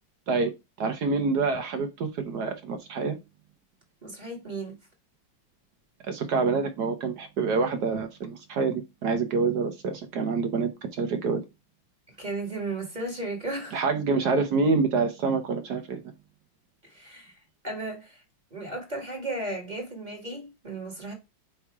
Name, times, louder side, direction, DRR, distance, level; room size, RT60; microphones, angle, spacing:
voice 1, 0.8-3.2 6.1-11.4 13.7-16.0, right 4 dB, 60° right, 1.4 m, -27 dB
voice 2, 4.0-4.8 12.2-13.8 16.8-18.2 18.5-21.1, right 2 dB, 25° right, 1.8 m, -35 dB
8.4 x 3.1 x 4.7 m
omnidirectional pair, 2.1 m